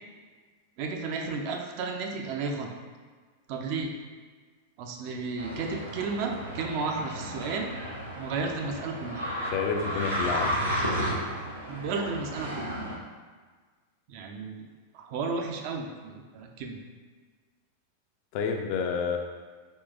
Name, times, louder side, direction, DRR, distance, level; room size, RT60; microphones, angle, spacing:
voice 1, 0.8-2.7 3.5-3.9 4.8-7.7 8.2-9.2 11.7-12.8 14.1-14.7 14.9-16.8, right 4 dB, 45° right, 2 dB, 0.4 m, -33 dB
sound 1, 5.4-13.0, equal, 85° right, 0.7 m, -33 dB
voice 2, 9.5-10.5 18.3-19.2, left 6 dB, 45° left, 3 dB, 0.3 m, -29 dB
3.6 x 2.8 x 2.5 m, 1.5 s
figure-of-eight pair, 90°, 0 cm